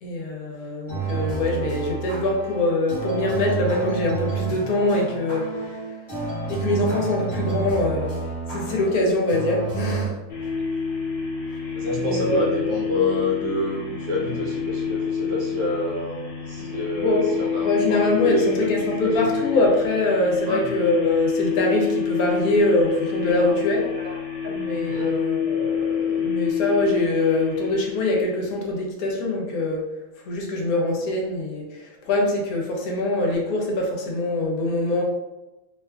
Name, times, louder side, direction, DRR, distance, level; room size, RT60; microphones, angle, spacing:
voice 1, 0.0-5.8 6.5-8.2 8.5-10.2 12.0-12.6 16.9-17.3 17.6-23.8 24.5-29.8 30.3-35.0, left 2 dB, 75° left, 0 dB, 1.1 m, -23 dB
sound 1, 0.9-10.1, right 4 dB, 15° left, 0.6 m, -30 dB
sound 2, 10.3-28.6, left 7 dB, 45° left, 1.0 m, -28 dB
voice 2, 11.7-19.4 20.5-20.6 23.2-23.6 23.8-24.5 24.9-25.2, left 2 dB, 65° right, -2 dB, 0.9 m, -28 dB
2.6 x 2.4 x 2.3 m, 1.0 s
omnidirectional pair, 1.6 m